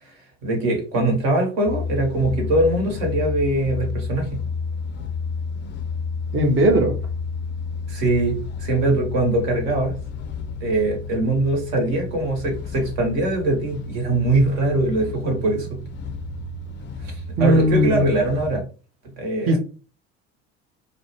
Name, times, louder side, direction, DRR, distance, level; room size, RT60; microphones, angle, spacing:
voice 1, 0.4-4.4 7.9-9.9 10.6-15.8 17.0-18.6 19.2-19.5, right 2 dB, 65° right, 1 dB, 1.3 m, -22 dB
sound 1, 1.7-18.6, left 4 dB, 30° left, 0.4 m, -31 dB
voice 2, 6.3-7.0 17.4-18.1 19.5-19.6, equal, 35° right, 1 dB, 0.7 m, -18 dB
2.4 x 2.1 x 2.8 m, 0.35 s
hypercardioid pair, 65°, 38 cm